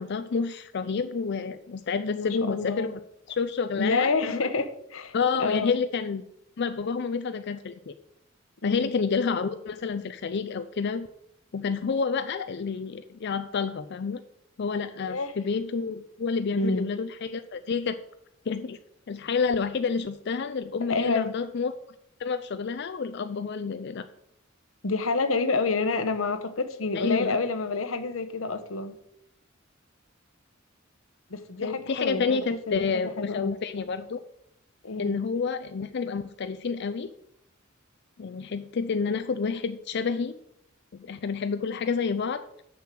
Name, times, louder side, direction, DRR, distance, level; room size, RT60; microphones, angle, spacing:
voice 1, 0.0-3.0 3.3-4.5 5.1-6.2 6.6-7.9 8.6-11.1 11.5-14.2 14.6-18.0 18.5-18.8 19.1-21.7 22.2-24.0 26.9-27.4 31.6-34.2 35.0-37.1 38.2-40.4 40.9-42.5, left 5 dB, 60° left, 10 dB, 0.5 m, -29 dB
voice 2, 2.0-2.9 3.8-5.7 8.6-8.9 15.1-15.3 16.5-16.9 20.9-21.3 24.8-28.9 31.3-32.4 32.7-33.5 34.8-35.2, left 3 dB, 90° left, 10 dB, 0.9 m, -28 dB
7.0 x 6.2 x 7.5 m, 0.76 s
head